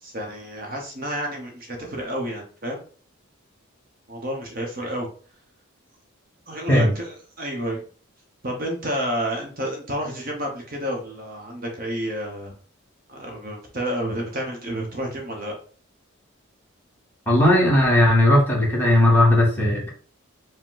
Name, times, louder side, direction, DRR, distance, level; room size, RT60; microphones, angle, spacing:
voice 1, 0.0-2.8 4.1-5.1 6.5-7.8 8.4-12.5 13.1-15.5, equal, 40° right, 1 dB, 0.8 m, -30 dB
voice 2, 17.3-19.9, left 1 dB, 10° left, -3 dB, 1.1 m, -17 dB
4.9 x 2.1 x 3.8 m, 0.42 s
head